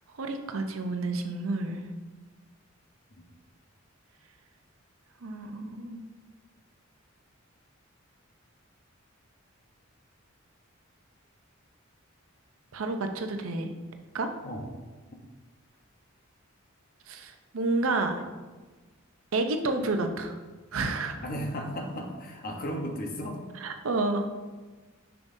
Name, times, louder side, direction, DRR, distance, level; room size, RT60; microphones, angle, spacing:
voice 1, 0.1-1.8 5.2-6.0 12.7-13.7 14.1-14.3 17.1-18.2 19.3-20.4 20.7-21.2 23.5-24.3, right 2 dB, 85° right, 6 dB, 0.6 m, -30 dB
voice 2, 21.2-23.4, equal, 45° left, 2 dB, 0.9 m, -34 dB
7.1 x 5.7 x 2.7 m, 1.3 s
head